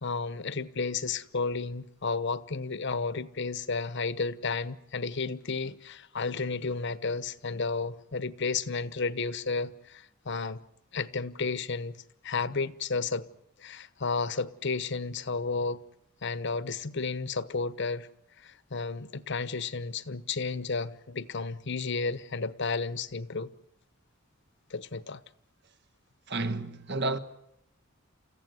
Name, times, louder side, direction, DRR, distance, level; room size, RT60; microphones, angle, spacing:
voice 1, 0.0-10.6 10.9-12.0 12.2-13.3 13.6-15.8 16.2-18.1 18.4-23.5 24.7-25.2, left 4 dB, 60° left, 1.0 m, -32 dB
voice 2, 26.3-27.2, right 2 dB, 55° right, 1.4 m, -30 dB
29.0 x 15.5 x 9.6 m
head